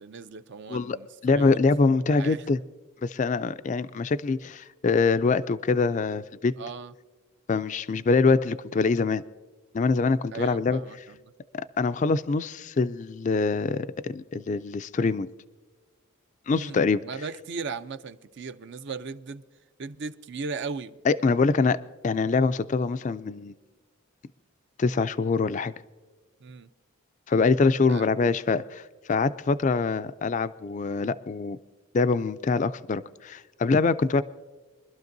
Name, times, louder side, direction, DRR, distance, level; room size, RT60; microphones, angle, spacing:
voice 1, 0.0-2.4 6.6-6.9 10.3-11.1 16.5-16.8 17.0-19.4 19.8-21.0 26.4-26.7 27.9-28.3, right 4 dB, 55° right, 0.5 m, -37 dB
voice 2, 1.2-2.6 3.0-6.5 7.5-9.2 9.7-11.1 11.5-15.3 16.5-17.0 21.0-21.8 22.0-23.5 24.8-25.7 27.3-28.8 29.1-31.6 31.9-34.2, left 4 dB, 35° left, 0.3 m, -24 dB
24.0 x 12.5 x 2.6 m
head